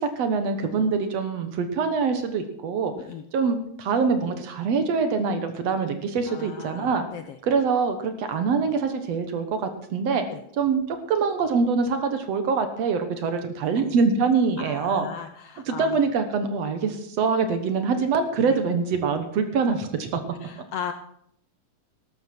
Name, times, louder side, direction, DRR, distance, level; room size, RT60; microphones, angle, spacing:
voice 1, 0.0-2.9 3.3-7.1 7.4-10.2 10.6-15.1 15.7-20.2, right 5 dB, 65° right, 8 dB, 2.2 m, -24 dB
voice 2, 6.3-7.4 10.3-10.4 14.6-16.0 18.4-18.6 20.4-20.9, left 8 dB, 75° left, 8 dB, 1.5 m, -37 dB
13.0 x 12.5 x 4.5 m, 0.70 s
omnidirectional pair, 3.4 m